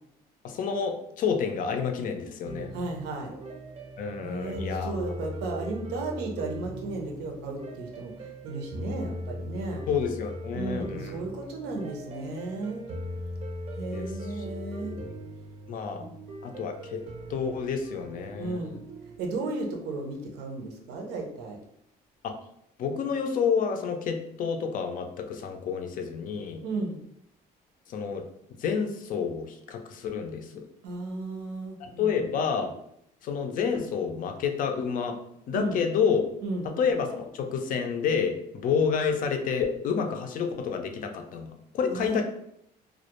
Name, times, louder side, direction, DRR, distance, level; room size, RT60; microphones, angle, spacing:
voice 1, 0.4-2.7 4.0-4.9 9.9-11.2 13.9-14.1 14.8-15.1 15.7-16.0 16.4-17.0 17.3-18.7 22.2-22.3 22.8-26.6 27.9-28.3 28.6-30.5 31.8-32.8 33.2-35.2 35.5-36.3 36.6-42.2, left 6 dB, 55° left, 5 dB, 0.4 m, -29 dB
sound 1, 2.5-19.2, equal, 35° right, 0.5 m, -39 dB
voice 2, 2.7-3.3 4.2-9.8 10.6-12.8 13.7-15.0 15.9-16.2 18.4-18.8 19.2-21.6 26.6-27.0 30.8-32.3 35.5-35.8 36.4-36.7 41.9-42.2, right 2 dB, 85° right, 2 dB, 0.6 m, -34 dB
2.3 x 2.1 x 2.8 m, 0.74 s
cardioid pair, 110°, 17 cm